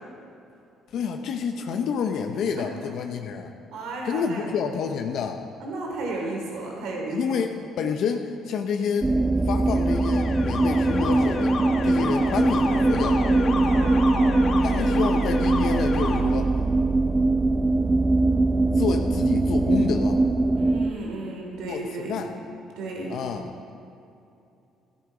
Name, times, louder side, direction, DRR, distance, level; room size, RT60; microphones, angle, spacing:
voice 1, 0.9-3.5 4.0-5.4 7.1-9.1 9.4-11.5 11.8-13.5 14.6-16.5 18.7-20.2 21.7-22.3 23.1-23.7, left 6 dB, 70° left, 5 dB, 0.7 m, -29 dB
voice 2, 3.7-4.5 5.6-7.2 13.7-15.0 20.6-22.2 22.7-23.2, right 2 dB, 80° right, -1 dB, 3.1 m, -34 dB
sound 1, 9.0-20.9, right 2 dB, 20° right, 0.5 m, -22 dB
Alarm, 9.7-16.2, left 4 dB, 50° left, 1.2 m, -32 dB
13.5 x 12.5 x 4.9 m, 2.7 s
cardioid pair, 100°, 0 cm